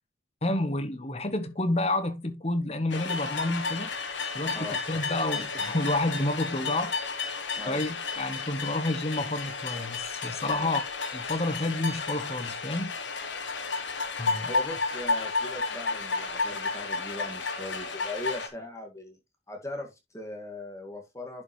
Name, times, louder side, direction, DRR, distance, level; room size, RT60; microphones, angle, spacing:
voice 1, 0.4-3.9 4.3-7.0 7.7-10.8 11.1-12.9 14.2-14.5, left 2 dB, 30° left, 1.0 m, -29 dB
sound 1, 2.9-18.5, left 4 dB, 70° left, 1.5 m, -32 dB
voice 2, 7.5-7.9 10.5-10.7 14.4-19.2 19.5-21.4, left 2 dB, 15° left, 1.9 m, -39 dB
10.5 x 5.5 x 3.1 m
head